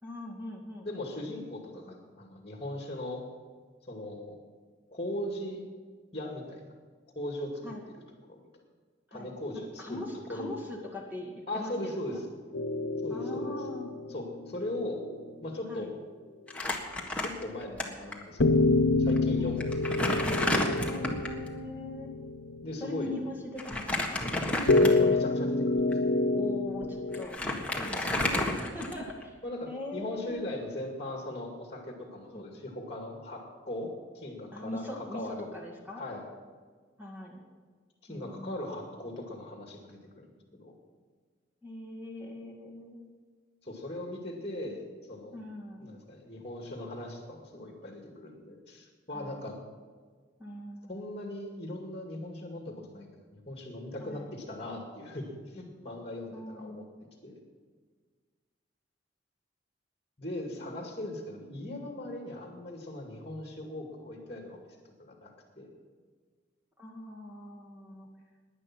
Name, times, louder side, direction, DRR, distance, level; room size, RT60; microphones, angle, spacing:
voice 1, 0.0-0.9 7.6-7.8 9.1-9.3 9.8-12.2 13.1-13.9 15.7-15.9 19.4-19.6 20.8-22.1 22.8-24.1 26.3-27.4 27.7-29.3 29.7-30.4 32.2-32.5 34.5-36.0 37.0-37.4 38.1-38.8 41.6-43.1 45.3-45.9 49.1-49.4 50.4-51.3 54.0-54.3 56.3-56.9 60.7-60.8 66.8-68.1, left 1 dB, 10° right, -1 dB, 2.1 m, -41 dB
voice 2, 0.8-3.2 3.9-4.4 4.9-5.6 6.1-6.7 7.2-7.7 8.2-8.5 9.1-10.0 10.3-10.5 11.5-12.2 13.0-13.5 14.1-15.1 15.4-15.9 17.2-18.7 19.0-19.9 22.6-23.2 24.6-26.1 28.5-28.7 29.4-35.5 36.0-36.3 38.0-40.7 43.6-45.4 45.8-49.6 50.9-53.1 53.3-56.8 57.2-57.4 60.2-64.6 65.0-65.8, left 1 dB, 30° left, 1 dB, 2.2 m, -39 dB
sound 1, 12.5-15.2 18.4-23.0 24.7-27.2, left 2 dB, 80° left, 0.9 m, -27 dB
Crumpling crinkling, 16.5-17.8 18.1-18.2 19.1-19.2 19.6-21.4 23.6-25.2 25.8-25.9 26.8-26.9 27.1-29.2, left 1 dB, 5° left, 1.6 m, -31 dB
17.0 x 10.5 x 6.0 m, 1.6 s
head